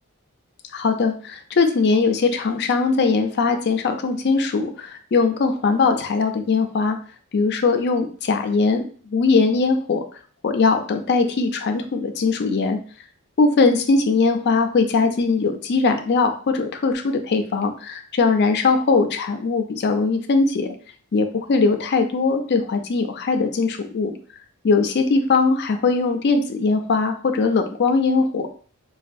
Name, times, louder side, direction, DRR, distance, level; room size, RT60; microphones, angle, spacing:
voice 1, 0.7-7.0 7.3-8.8 9.1-10.0 10.4-12.8 13.4-20.7 21.1-24.1 24.6-28.5, left 4 dB, 50° left, 6 dB, 0.4 m, -20 dB
4.1 x 2.3 x 2.6 m, 0.43 s
head